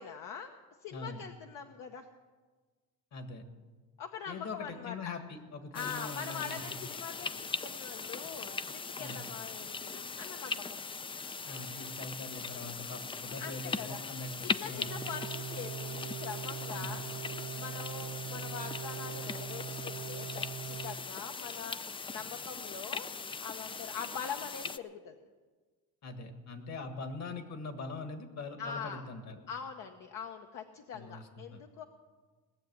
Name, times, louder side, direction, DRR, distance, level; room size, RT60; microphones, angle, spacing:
voice 1, 0.0-2.1 4.0-5.1 5.7-10.8 13.4-14.0 14.4-17.0 17.5-23.1 23.4-25.3 28.6-29.0 29.5-31.8, left 7 dB, 65° left, 4 dB, 1.0 m, -43 dB
voice 2, 0.9-1.2 3.1-3.5 4.3-6.6 9.0-9.2 11.5-14.9 16.7-16.9 26.0-29.4 30.9-31.6, left 3 dB, 50° left, 7 dB, 1.8 m, -42 dB
sound 1, 5.7-24.8, left 4 dB, 15° left, 0.4 m, -40 dB
sound 2, 14.7-21.0, right 8 dB, 60° right, 0.8 m, -42 dB
18.5 x 7.2 x 9.5 m, 1.4 s
cardioid pair, 120°, 34 cm